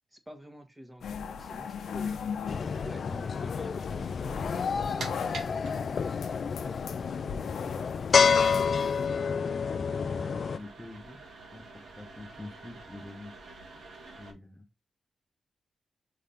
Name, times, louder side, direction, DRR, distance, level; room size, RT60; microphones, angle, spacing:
voice 1, 0.1-2.3 2.8-5.8, equal, 10° right, 1.4 m, -48 dB
sound 1, 1.0-9.1, left 6 dB, 90° left, 0.9 m, -39 dB
sound 2, 2.5-10.6, left 6 dB, 60° left, 0.4 m, -29 dB
sound 3, 4.6-14.3, right 3 dB, 80° right, 2.2 m, -48 dB
voice 2, 6.5-7.1 7.6-8.1 9.1-13.5 14.2-14.7, left 1 dB, 5° left, 0.9 m, -47 dB
5.7 x 3.6 x 5.0 m
cardioid pair, 100°, 0 cm